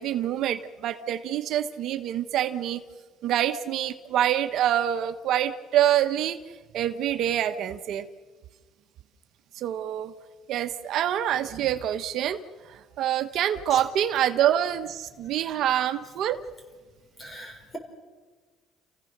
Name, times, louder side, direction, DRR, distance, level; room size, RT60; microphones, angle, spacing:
voice 1, 0.0-2.8 3.2-6.4 6.7-8.1 9.5-10.1 10.5-16.4, right 11 dB, 60° right, 8 dB, 1.1 m, -26 dB
voice 2, 17.2-17.8, equal, 25° left, 3 dB, 5.4 m, -40 dB
29.0 x 15.5 x 6.7 m, 1.4 s
cardioid pair, 115°, 0 cm